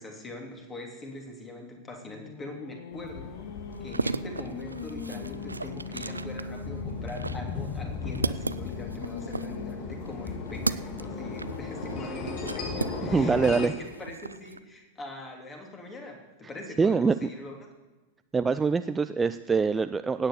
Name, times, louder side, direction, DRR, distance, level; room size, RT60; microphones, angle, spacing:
voice 1, 0.0-3.3 3.8-17.6, left 1 dB, 20° left, 3 dB, 3.0 m, -42 dB
Singing, 1.7-7.1 7.8-11.6, left 5 dB, 60° left, 1.3 m, -42 dB
sound 1, 2.9-13.7, left 4 dB, 40° left, 1.9 m, -37 dB
sound 2, 3.7-13.4 13.7-14.6, right 3 dB, 80° right, 0.4 m, -35 dB
voice 2, 13.1-13.7 16.8-17.1 18.3-20.3, right 5 dB, 15° right, 12 dB, 0.4 m, -24 dB
17.5 x 9.0 x 7.0 m, 1.2 s
figure-of-eight pair, 90°, 0 cm